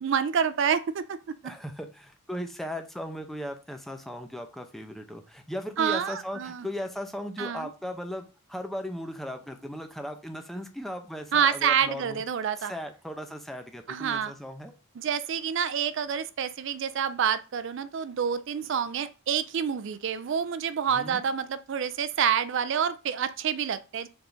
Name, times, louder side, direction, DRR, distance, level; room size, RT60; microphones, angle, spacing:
voice 1, 0.0-1.2 5.8-6.7 7.4-7.7 11.3-12.7 13.9-14.3 15.0-24.1, right 7 dB, 60° right, 0.4 m, -28 dB
voice 2, 1.4-12.2 12.6-14.7 20.9-21.2, equal, ahead, 0.6 m, -37 dB
7.0 x 3.7 x 3.9 m
head